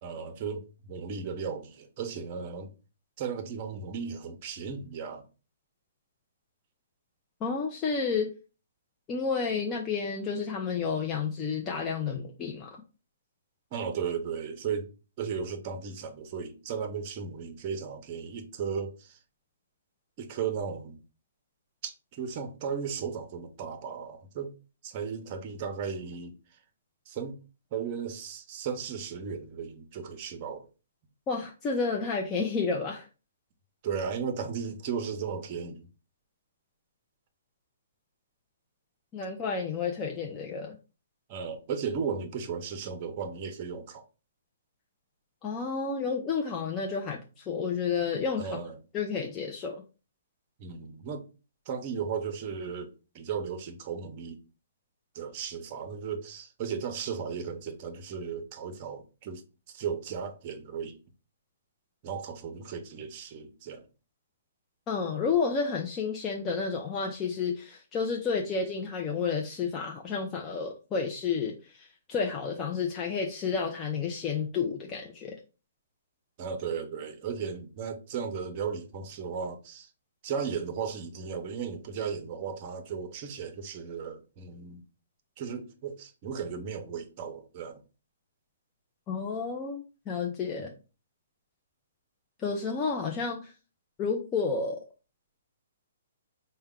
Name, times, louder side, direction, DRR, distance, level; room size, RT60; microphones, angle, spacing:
voice 1, 0.0-2.7 3.2-5.2 13.7-14.9 15.2-19.2 20.2-21.0 21.8-24.5 24.8-26.3 27.1-27.4 27.7-30.7 33.8-35.9 41.3-44.0 48.4-48.7 50.6-51.2 51.7-52.9 53.1-54.4 55.1-59.4 59.7-61.0 62.0-63.8 76.4-79.9 80.2-84.8 85.4-87.8, right 6 dB, 35° right, 0.7 m, -35 dB
voice 2, 7.4-8.3 9.1-12.8 31.3-33.1 39.1-40.8 45.4-48.5 48.9-49.8 64.9-75.4 89.1-90.7 92.4-93.5 94.0-94.8, left 5 dB, 20° left, 0.5 m, -31 dB
4.4 x 2.2 x 3.6 m
hypercardioid pair, 150°, 0 cm